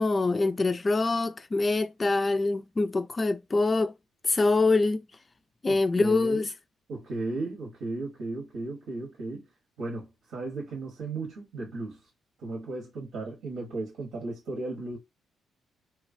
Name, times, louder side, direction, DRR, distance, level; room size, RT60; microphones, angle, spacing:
voice 1, 0.0-3.9 4.2-5.0 5.6-6.5, left 3 dB, 25° left, 0.3 m, -25 dB
voice 2, 5.7-6.5 6.9-9.5 9.8-12.0 12.4-15.0, right 2 dB, 75° right, 1.1 m, -35 dB
3.0 x 2.3 x 2.6 m
cardioid pair, 90°, 0 cm